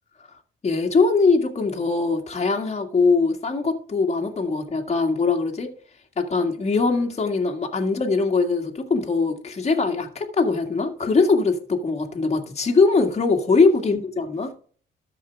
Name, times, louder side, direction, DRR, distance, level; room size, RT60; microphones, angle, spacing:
voice 1, 0.6-5.7 6.2-14.5, left 4 dB, 35° left, 2.0 m, -21 dB
13.5 x 5.0 x 3.4 m
cardioid pair, 90°, 20 cm